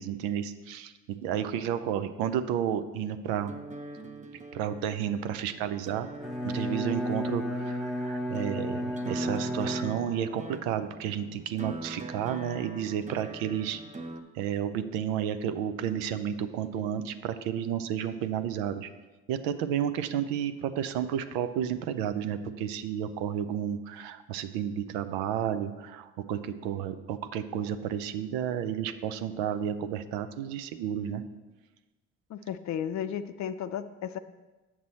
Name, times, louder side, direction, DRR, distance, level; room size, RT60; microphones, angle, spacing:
voice 1, 0.0-3.5 4.5-6.1 6.4-13.8 14.3-18.9 19.3-31.2, right 9 dB, 85° right, 10 dB, 0.6 m, -32 dB
sound 1, 3.4-14.2, right 2 dB, 20° right, 0.7 m, -43 dB
Bowed string instrument, 6.1-10.4, equal, ahead, 1.2 m, -33 dB
voice 2, 32.3-34.2, left 9 dB, 55° left, 11 dB, 0.5 m, -34 dB
7.4 x 6.0 x 4.2 m, 1.2 s
supercardioid pair, 60°, 35 cm